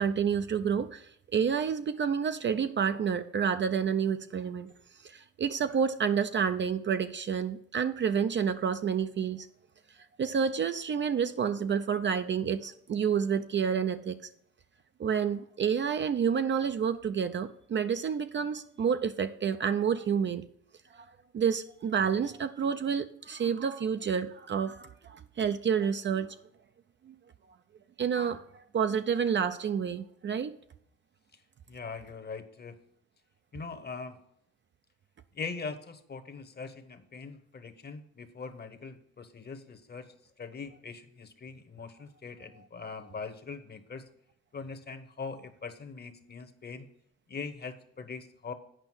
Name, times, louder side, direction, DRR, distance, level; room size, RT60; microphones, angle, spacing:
voice 1, 0.0-4.7 5.0-9.5 10.2-14.2 15.0-20.5 20.9-21.1 21.3-26.4 27.1-27.2 28.0-30.5, right 7 dB, 40° right, 10 dB, 0.4 m, -29 dB
voice 2, 31.7-32.7 33.5-34.2 35.3-40.1 40.4-44.0 44.5-46.9 47.3-48.5, left 4 dB, 35° left, 9 dB, 0.9 m, -41 dB
9.0 x 5.2 x 6.1 m, 0.71 s
cardioid pair, 90°, 30 cm